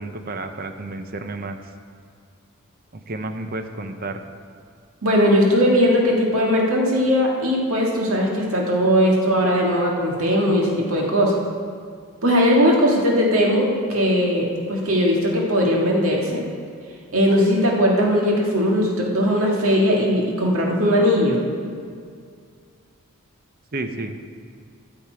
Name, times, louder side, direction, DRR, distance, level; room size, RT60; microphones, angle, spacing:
voice 1, 0.0-1.6 3.1-4.2 23.7-24.1, right 2 dB, 40° right, 7 dB, 0.7 m, -31 dB
voice 2, 5.0-11.4 12.2-16.4 17.1-21.4, equal, 75° right, -2 dB, 1.9 m, -19 dB
13.5 x 7.2 x 4.7 m, 2.2 s
head